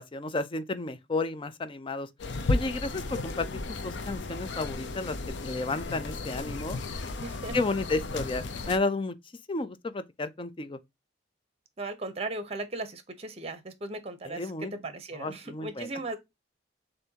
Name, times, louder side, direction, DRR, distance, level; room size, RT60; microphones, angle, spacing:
voice 1, 0.0-2.1 2.5-3.5 3.8-5.2 5.4-7.0 7.5-9.2 9.5-10.8 14.3-14.7 15.1-15.9, left 3 dB, 30° left, 0.5 m, -32 dB
sound 1, 2.2-8.8, left 2 dB, 70° left, 0.6 m, -34 dB
voice 2, 7.2-7.6 11.8-16.2, right 2 dB, 35° right, 0.9 m, -37 dB
6.8 x 2.7 x 2.8 m
head